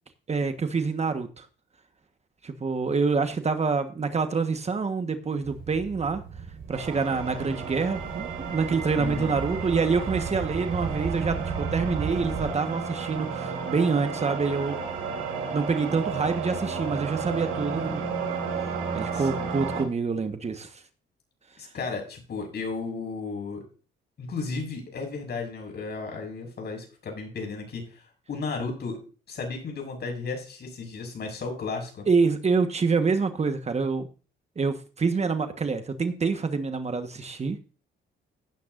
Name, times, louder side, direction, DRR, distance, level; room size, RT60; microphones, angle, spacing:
voice 1, 0.3-1.4 2.4-6.2 6.7-14.8 15.5-18.0 18.9-20.7 32.1-34.1 34.6-37.6, right 4 dB, 35° right, 1.3 m, -26 dB
sound 1, 5.4-12.5, right 5 dB, 60° right, 4.5 m, -36 dB
sound 2, 6.7-19.8, right 5 dB, 90° right, 3.2 m, -33 dB
voice 2, 9.0-9.4 19.1-19.5 21.6-23.6 24.2-29.0 29.3-32.1, left 4 dB, 55° left, 6.5 m, -34 dB
16.0 x 9.3 x 2.6 m
cardioid pair, 90°, 20 cm